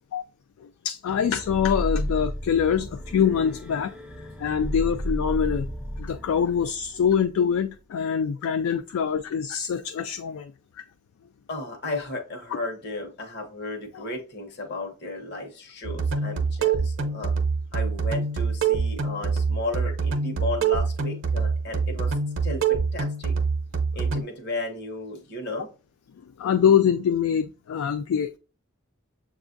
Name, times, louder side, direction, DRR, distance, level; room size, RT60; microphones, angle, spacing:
voice 1, 0.8-3.9 4.4-5.7 6.0-10.5 13.9-14.0 26.4-28.4, left 7 dB, 85° left, 0.3 m, -24 dB
sound 1, 1.1-7.8, equal, 5° right, 0.4 m, -33 dB
voice 2, 11.5-17.3 17.7-22.2 22.4-23.3 23.9-25.7, left 2 dB, 55° left, 0.9 m, -34 dB
sound 2, 15.8-24.2, right 5 dB, 65° right, 0.6 m, -25 dB
7.0 x 2.4 x 2.5 m
head